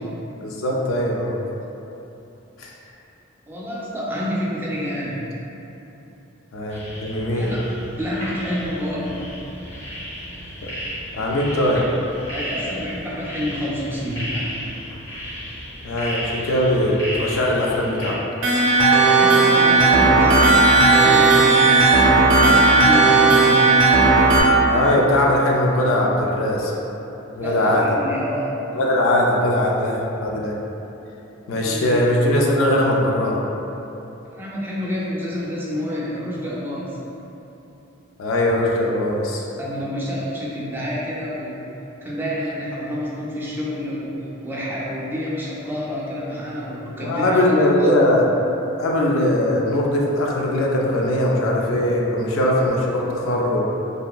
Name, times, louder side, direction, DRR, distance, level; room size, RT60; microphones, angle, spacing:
voice 1, 0.4-1.4 2.6-2.7 6.5-7.5 10.6-10.7 11.1-11.8 15.8-18.2 24.7-26.7 27.4-27.9 28.7-30.6 31.5-33.4 38.2-39.5 47.0-48.2 48.8-53.7, left 1 dB, 75° left, -2 dB, 0.4 m, -20 dB
voice 2, 3.5-5.2 7.3-7.7 8.0-9.3 12.3-14.5 19.2-21.7 22.2-23.6 27.4-28.7 31.5-32.1 34.3-37.0 39.6-41.7 42.0-47.9, equal, 10° right, -6 dB, 0.3 m, -28 dB
sound 1, 6.7-18.1, equal, 60° left, 1.0 m, -34 dB
sound 2, 18.4-24.4, right 3 dB, 65° right, 0.6 m, -14 dB
2.9 x 2.4 x 2.2 m, 3.0 s
head